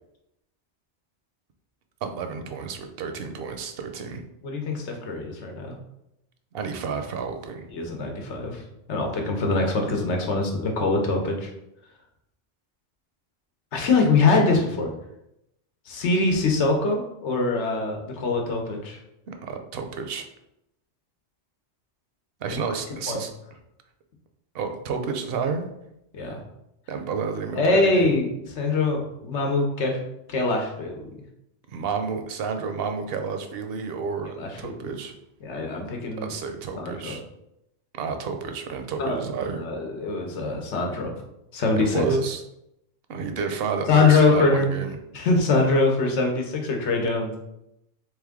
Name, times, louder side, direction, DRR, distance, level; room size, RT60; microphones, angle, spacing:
voice 1, 2.0-4.2 6.5-7.7 19.3-20.3 22.4-23.3 24.5-25.7 26.9-28.2 31.7-35.1 36.2-37.2 37.9-39.6 41.8-42.4 43.1-45.0, right 5 dB, 65° right, 6 dB, 0.7 m, -30 dB
voice 2, 4.4-5.8 7.7-8.6 8.9-11.5 13.7-14.9 15.9-19.0 23.1-23.2 26.1-26.4 27.6-30.0 30.3-31.1 34.4-34.9 35.4-36.3 36.8-37.2 39.0-39.2 39.6-41.1 41.5-42.0 43.9-44.7 45.1-47.3, left 3 dB, 85° left, 2 dB, 1.1 m, -23 dB
3.5 x 3.2 x 3.6 m, 0.84 s
omnidirectional pair, 1.2 m